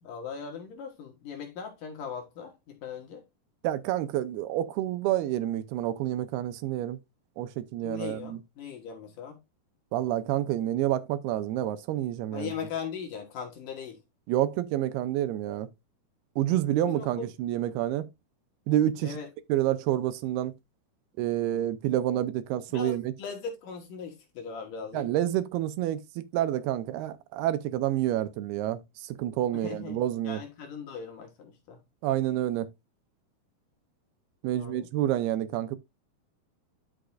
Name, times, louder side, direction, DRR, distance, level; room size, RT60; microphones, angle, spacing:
voice 1, 0.0-3.2 7.8-9.4 12.3-14.0 16.8-17.3 19.0-19.3 22.7-25.1 29.5-30.0 30.2-31.8 34.5-34.9, left 6 dB, 60° left, 2.8 m, -39 dB
voice 2, 3.6-7.0 7.4-8.4 9.9-12.5 14.3-15.7 16.4-18.1 18.7-19.2 19.5-20.5 21.2-23.1 24.9-30.4 32.0-32.7 34.4-35.8, right 13 dB, 80° right, 2.5 m, -28 dB
11.5 x 5.8 x 2.5 m
omnidirectional pair, 4.7 m